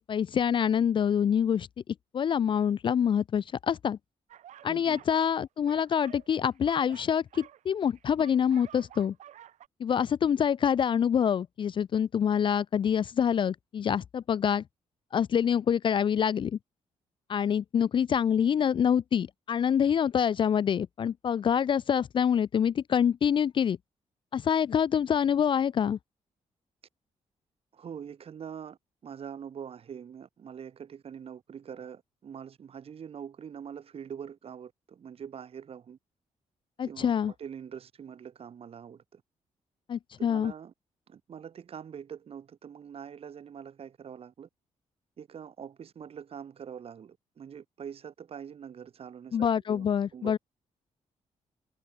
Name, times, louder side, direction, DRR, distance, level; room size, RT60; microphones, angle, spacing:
voice 1, 0.0-1.7 2.1-4.0 4.6-9.1 9.8-14.6 15.1-16.6 17.3-23.8 24.3-26.0 36.8-37.3 39.9-40.5 49.3-50.4, left 8 dB, 45° left, 0.4 m, -26 dB
sound 1, 4.3-5.4 5.7-9.7, right 11 dB, 85° right, 2.9 m, -51 dB
voice 2, 4.7-5.0 27.7-36.0 36.9-39.2 40.2-40.7 41.1-44.5 45.2-49.9 50.1-50.4, right 7 dB, 55° right, 6.0 m, -44 dB
cardioid pair, 130°, 12 cm